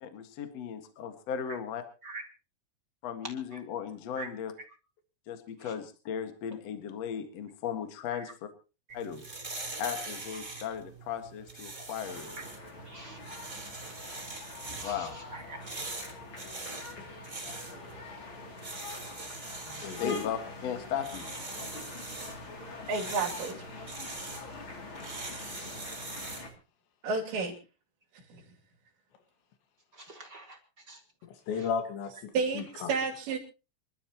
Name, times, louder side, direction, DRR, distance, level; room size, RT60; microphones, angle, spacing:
voice 1, 0.0-1.8 3.0-4.5 5.3-8.5 8.9-9.2 9.8-12.4 14.8-15.2 19.7-21.2, left 8 dB, 50° left, 7 dB, 2.2 m, -36 dB
sound 1, 8.9-26.5, right 3 dB, 20° right, 3.5 m, -43 dB
sound 2, 12.0-26.5, left 3 dB, 35° left, 3.1 m, -45 dB
voice 2, 12.9-13.2 14.8-15.6 29.9-30.6 30.9-31.0, right 3 dB, 40° right, 3 dB, 1.6 m, -44 dB
voice 3, 19.8-20.2 31.3-32.9, left 6 dB, 85° left, 7 dB, 4.1 m, -35 dB
voice 4, 22.9-23.6 24.0-24.1 27.0-27.6 28.3-28.4 32.3-33.4, right 4 dB, 85° right, 0 dB, 5.1 m, -31 dB
27.0 x 12.5 x 3.0 m, 0.33 s
omnidirectional pair, 5.0 m